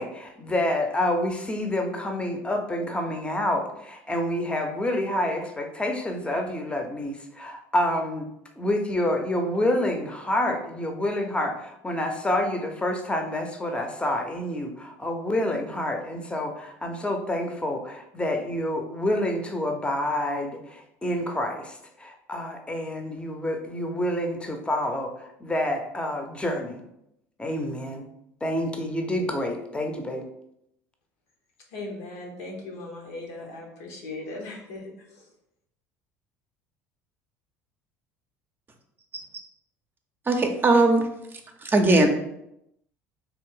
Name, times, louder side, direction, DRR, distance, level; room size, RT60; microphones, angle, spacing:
voice 1, 0.0-8.3 8.6-26.8 27.4-28.1 28.4-30.2, left 1 dB, 15° left, 4 dB, 0.7 m, -28 dB
voice 2, 31.7-35.3, left 2 dB, 80° left, 0 dB, 1.0 m, -38 dB
voice 3, 40.3-41.0 41.6-42.1, right 2 dB, 25° right, 5 dB, 0.6 m, -19 dB
3.4 x 2.4 x 3.8 m, 0.80 s
hypercardioid pair, 75°, 8 cm